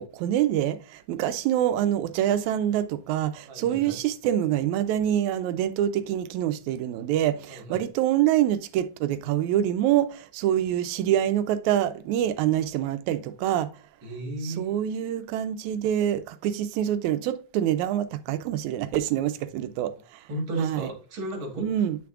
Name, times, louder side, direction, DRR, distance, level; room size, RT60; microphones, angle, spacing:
voice 1, 0.0-13.7 14.4-19.9 20.6-20.9 21.6-22.0, right 11 dB, 85° right, 1.9 m, -26 dB
voice 2, 3.5-4.0 7.5-7.9 14.0-14.7 20.3-21.6, right 1 dB, 50° right, 2.0 m, -34 dB
9.3 x 5.9 x 2.4 m
omnidirectional pair, 3.4 m